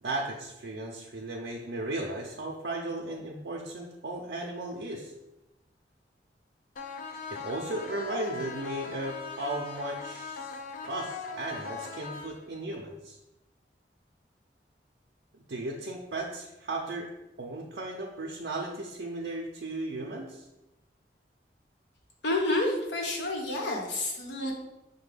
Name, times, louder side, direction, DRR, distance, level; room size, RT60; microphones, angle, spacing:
voice 1, 0.0-5.1 7.3-10.4 10.8-13.2 15.5-17.1 17.4-20.4, right 2 dB, 70° right, -2 dB, 0.5 m, -35 dB
sound 1, 6.8-12.8, left 5 dB, 50° left, 0.4 m, -40 dB
voice 2, 22.2-24.5, left 2 dB, 85° left, 0 dB, 0.9 m, -29 dB
5.7 x 2.2 x 3.3 m, 0.94 s
head